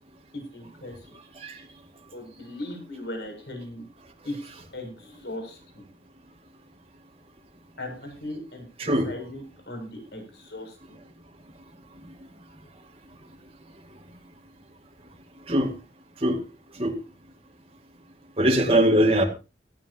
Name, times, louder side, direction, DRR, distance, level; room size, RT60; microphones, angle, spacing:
voice 1, 0.3-0.9 2.1-3.8 4.2-4.3 4.7-5.8 7.8-8.6 9.0-10.8, left 1 dB, 70° left, 3 dB, 7.0 m, -38 dB
voice 2, 18.4-19.2, right 1 dB, 35° right, 1 dB, 2.2 m, -21 dB
17.5 x 14.5 x 2.9 m, 0.30 s
head